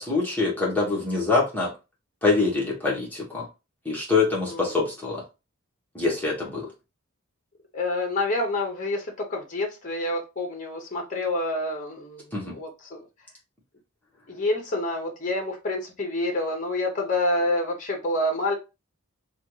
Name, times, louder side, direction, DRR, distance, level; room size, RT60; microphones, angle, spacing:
voice 1, 0.0-1.7 2.2-3.4 3.8-5.2 5.9-6.7 12.3-12.5, left 3 dB, 10° left, 0.9 m, -24 dB
voice 2, 4.5-4.8 7.7-13.0 14.3-18.6, left 1 dB, 35° left, 0.7 m, -28 dB
3.5 x 2.3 x 3.0 m
head